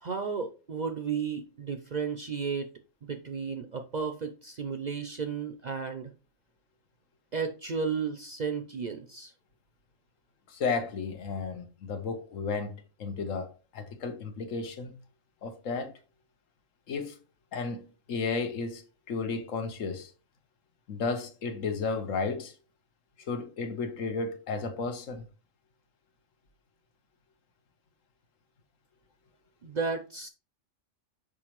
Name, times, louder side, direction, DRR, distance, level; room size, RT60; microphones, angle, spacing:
voice 1, 0.0-2.7 3.1-6.1 7.3-9.3 29.6-30.3, right 5 dB, 55° right, 0.5 m, -33 dB
voice 2, 10.5-12.7 13.0-14.9 15.4-15.9 16.9-17.2 17.5-18.8 19.1-20.1 20.9-22.5 23.2-25.2, left 4 dB, 90° left, 1.3 m, -33 dB
6.1 x 5.1 x 3.0 m
omnidirectional pair, 1.3 m